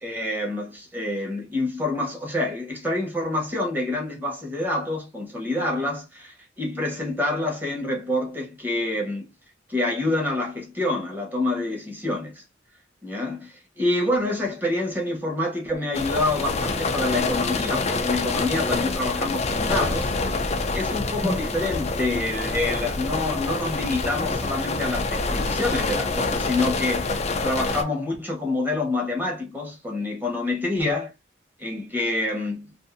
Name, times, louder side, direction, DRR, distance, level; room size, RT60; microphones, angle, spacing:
voice 1, 0.0-9.3 9.7-12.4 13.0-20.5 20.7-27.2 27.4-31.1 31.6-32.8, left 2 dB, 10° right, 1.0 m, -27 dB
sound 1, 15.9-27.8, left 3 dB, 35° left, 0.4 m, -26 dB
2.6 x 2.5 x 2.4 m
head